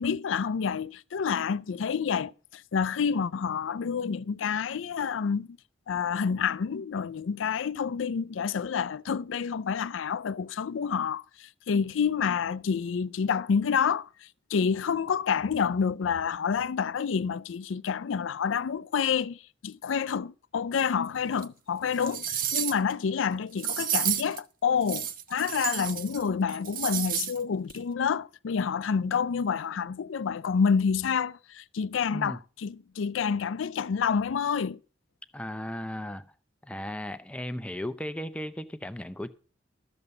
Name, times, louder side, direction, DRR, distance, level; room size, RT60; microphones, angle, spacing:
voice 1, 0.0-5.6 5.9-34.8, left 6 dB, 85° left, 0.4 m, -28 dB
sound 1, 21.4-21.5 21.9-22.9 23.6-24.4 24.8-26.2 26.5-27.4 27.7-27.8, right 10 dB, 50° right, 0.6 m, -31 dB
voice 2, 35.3-36.2 36.6-39.3, left 1 dB, 5° left, 0.5 m, -36 dB
12.5 x 6.9 x 5.2 m
head